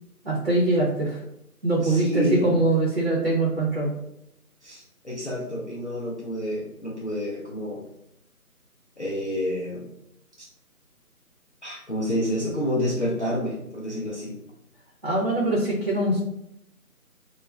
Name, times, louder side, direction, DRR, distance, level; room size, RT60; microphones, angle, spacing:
voice 1, 0.2-1.2 1.6-3.9 15.0-16.2, right 2 dB, 45° right, -5 dB, 0.6 m, -23 dB
voice 2, 1.8-2.5 4.6-7.8 9.0-9.9 10.4-10.5 11.6-14.4, equal, 50° left, -5 dB, 0.5 m, -29 dB
2.3 x 2.0 x 3.3 m, 0.80 s
figure-of-eight pair, 180°, 45 cm